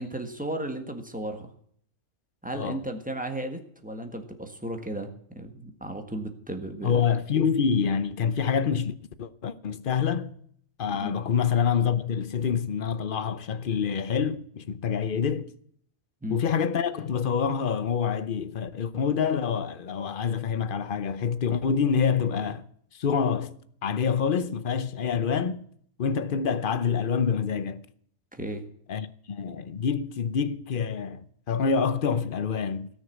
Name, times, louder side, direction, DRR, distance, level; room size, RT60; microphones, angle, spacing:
voice 1, 0.0-1.5 2.4-7.0 11.0-11.1 16.2-16.4 28.3-28.6, right 1 dB, 5° right, 1.5 m, -35 dB
voice 2, 6.8-10.4 10.8-15.5 16.3-22.7 22.9-25.6 26.0-27.8 28.9-32.9, left 6 dB, 45° left, 0.8 m, -27 dB
17.5 x 6.4 x 8.5 m
omnidirectional pair, 1.4 m